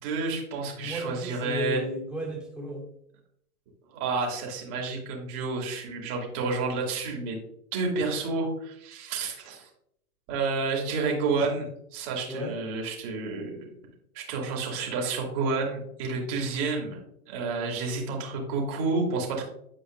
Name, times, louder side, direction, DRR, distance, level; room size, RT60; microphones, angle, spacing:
voice 1, 0.0-1.8 3.9-7.4 7.7-9.7 10.3-13.5 14.1-17.0 17.3-19.4, right 4 dB, 45° right, -1 dB, 2.4 m, -30 dB
voice 2, 0.8-2.9 12.3-12.6, equal, ahead, -4 dB, 2.5 m, -34 dB
9.3 x 4.9 x 2.5 m, 0.74 s
hypercardioid pair, 115°, 44 cm